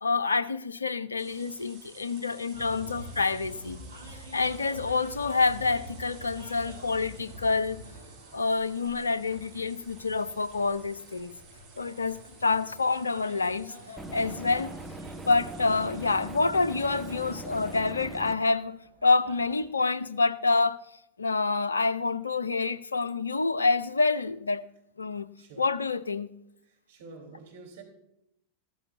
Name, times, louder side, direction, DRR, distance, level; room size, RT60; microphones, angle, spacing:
voice 1, 0.0-3.8 4.3-7.8 8.3-11.3 11.8-13.7 14.1-14.7 15.3-18.7 19.0-20.8 21.2-24.6 25.0-25.3 25.6-26.3, left 4 dB, 75° left, 0.5 m, -27 dB
sound 1, 1.2-17.8, right 3 dB, 35° right, 5.4 m, -53 dB
sound 2, 2.5-19.6, equal, 80° right, 2.1 m, -48 dB
sound 3, 14.0-18.4, right 2 dB, 5° right, 0.9 m, -41 dB
voice 2, 25.4-25.7 26.6-27.8, right 4 dB, 55° right, 3.6 m, -48 dB
15.0 x 13.5 x 2.7 m
figure-of-eight pair, 90°, 0 cm